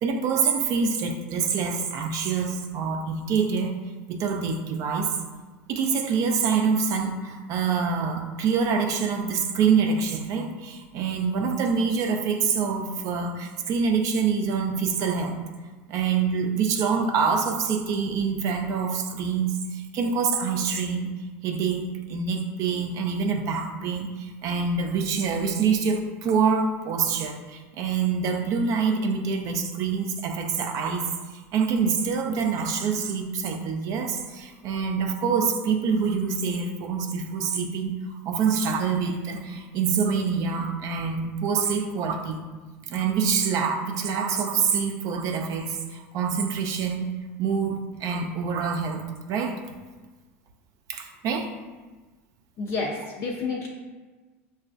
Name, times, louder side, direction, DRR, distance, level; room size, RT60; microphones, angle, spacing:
voice 1, 0.0-3.7 4.1-5.1 5.7-15.4 15.9-21.1 21.4-31.1 31.5-37.9 38.3-42.4 42.9-47.1 47.4-49.6 50.9-51.5, right 5 dB, 50° right, 4 dB, 0.4 m, -26 dB
voice 2, 52.6-53.7, left 4 dB, 50° left, -2 dB, 0.5 m, -29 dB
5.7 x 2.3 x 2.5 m, 1.3 s
supercardioid pair, 110°, 7 cm